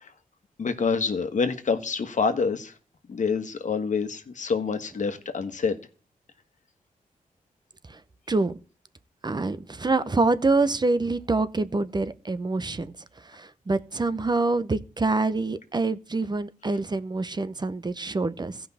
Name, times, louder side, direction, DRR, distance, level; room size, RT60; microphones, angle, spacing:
voice 1, 0.6-2.7 3.1-5.8, left 5 dB, 60° left, 1.4 m, -27 dB
voice 2, 9.2-12.9 13.3-18.6, right 3 dB, 30° right, 0.8 m, -26 dB
15.5 x 5.5 x 4.2 m
cardioid pair, 70°, 14 cm